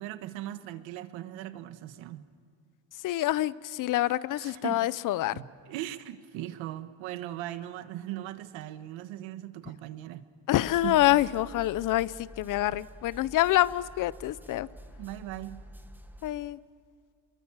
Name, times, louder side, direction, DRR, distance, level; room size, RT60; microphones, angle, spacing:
voice 1, 0.0-2.2 4.4-4.9 5.3-10.2 10.8-11.2 15.0-15.7, right 13 dB, 85° right, 11 dB, 1.5 m, -39 dB
voice 2, 3.0-5.4 10.5-14.7 16.2-16.6, left 15 dB, 45° left, 19 dB, 0.6 m, -26 dB
sound 1, 10.5-16.3, equal, 5° right, 1.0 m, -48 dB
28.5 x 22.5 x 7.3 m, 2.3 s
cardioid pair, 165°, 45 cm